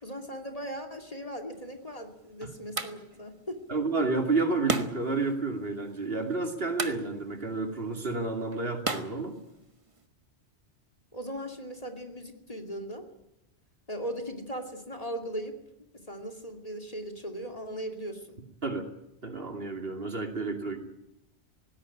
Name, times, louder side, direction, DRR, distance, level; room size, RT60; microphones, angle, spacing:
voice 1, 0.0-3.6 11.1-13.1 13.9-15.6 15.9-18.4, equal, 30° left, 7 dB, 2.6 m, -38 dB
sound 1, 1.5-10.1, right 3 dB, 30° right, 1.4 m, -39 dB
voice 2, 3.7-9.3 18.6-18.9 19.2-20.8, right 3 dB, 55° right, 4 dB, 2.9 m, -30 dB
19.0 x 17.0 x 10.0 m, 0.90 s
omnidirectional pair, 1.2 m